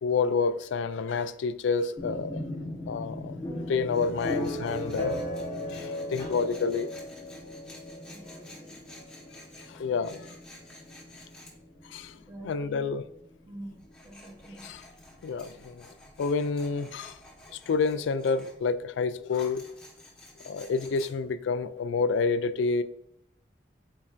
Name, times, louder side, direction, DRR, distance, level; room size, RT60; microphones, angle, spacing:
voice 1, 0.0-2.4 2.9-5.2 5.7-6.9 9.7-10.3 11.9-12.2 12.4-13.0 14.6-14.8 15.2-15.9 16.2-17.2 17.5-19.6 20.4-22.8, left 4 dB, 80° left, 0.3 m, -29 dB
sound 1, 2.0-15.7, left 1 dB, 25° left, 1.2 m, -38 dB
Tools, 3.9-11.5 13.8-18.5 19.3-21.1, left 1 dB, 5° left, 0.9 m, -52 dB
voice 2, 8.1-9.0 12.3-12.9 13.4-14.7, right 1 dB, 20° right, 0.7 m, -46 dB
4.5 x 4.3 x 2.4 m
head